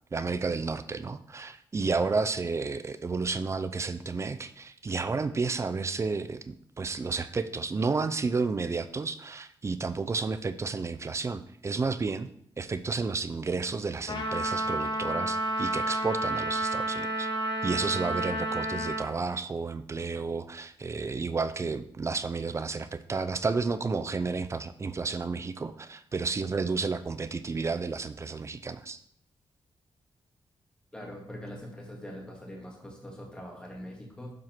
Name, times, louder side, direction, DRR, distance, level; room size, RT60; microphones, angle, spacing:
voice 1, 0.1-12.3 12.6-17.3 17.6-29.0, right 4 dB, 30° right, 12 dB, 0.5 m, -31 dB
Trumpet, 14.1-19.1, right 1 dB, 55° left, 1.2 m, -30 dB
voice 2, 30.9-34.3, equal, 10° left, -1 dB, 2.2 m, -42 dB
7.5 x 4.7 x 5.9 m, 0.65 s
cardioid pair, 110°, 9 cm